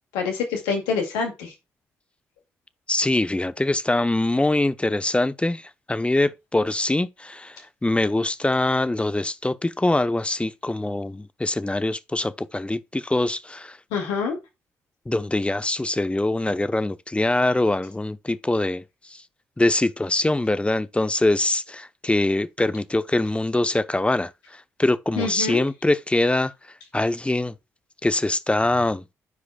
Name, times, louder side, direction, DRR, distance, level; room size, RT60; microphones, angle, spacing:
voice 1, 0.1-1.5 13.9-14.4 25.2-25.6, left 5 dB, 85° left, 2.1 m, -26 dB
voice 2, 2.9-13.8 15.1-18.8 19.1-19.2 19.6-26.5 26.9-27.5 28.0-29.0, left 2 dB, 15° left, 0.8 m, -23 dB
12.0 x 4.9 x 2.3 m
hypercardioid pair, 45°, 7 cm